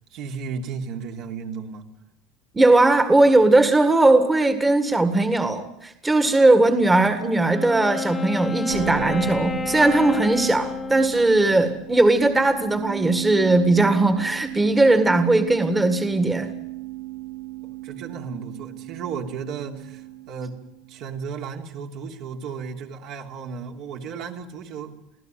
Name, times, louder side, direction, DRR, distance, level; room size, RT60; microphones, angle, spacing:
voice 1, 0.1-1.8 17.8-20.6 20.9-24.9, right 6 dB, 60° right, 2 dB, 3.0 m, -34 dB
voice 2, 2.5-16.5, right 2 dB, 10° right, 8 dB, 1.9 m, -19 dB
Wind instrument woodwind instrument, 7.5-12.0, left 4 dB, 20° left, 0.9 m, -31 dB
sound 1, 8.7-21.0, right 12 dB, 85° right, 2.7 m, -35 dB
25.5 x 16.0 x 9.2 m, 0.81 s
supercardioid pair, 125°, 0 cm